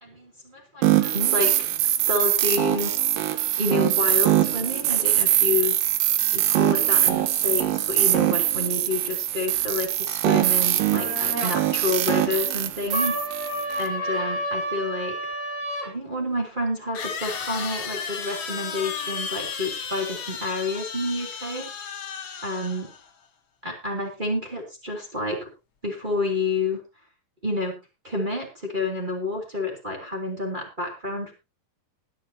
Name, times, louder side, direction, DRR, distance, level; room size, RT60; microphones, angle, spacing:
voice 1, 0.0-1.5 2.0-3.0 3.6-5.8 6.3-13.4 13.8-15.1 15.8-21.7 22.4-22.9 23.6-25.5 25.8-26.8 27.4-27.8 28.0-31.3, left 2 dB, 15° right, 0 dB, 2.6 m, -29 dB
sound 1, 0.8-13.9, right 13 dB, 75° right, 2.6 m, -22 dB
sound 2, 10.9-11.6 12.9-15.9, equal, 30° right, 2.6 m, -30 dB
sound 3, 15.3-15.4 16.9-23.1, left 6 dB, 55° left, 1.5 m, -34 dB
20.5 x 9.2 x 2.8 m, 0.26 s
omnidirectional pair, 4.1 m